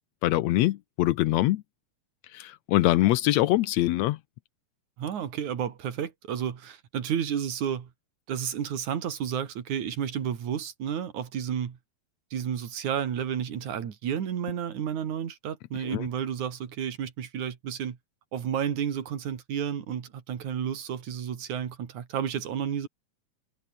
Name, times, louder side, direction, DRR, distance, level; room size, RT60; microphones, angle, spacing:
voice 1, 0.2-1.6 2.3-4.2 15.8-16.1, left 16 dB, 80° left, 1.8 m, -24 dB
voice 2, 5.0-7.9 8.3-11.8 12.3-18.0 18.3-22.9, right 8 dB, 75° right, 3.7 m, -31 dB
omnidirectional pair, 3.4 m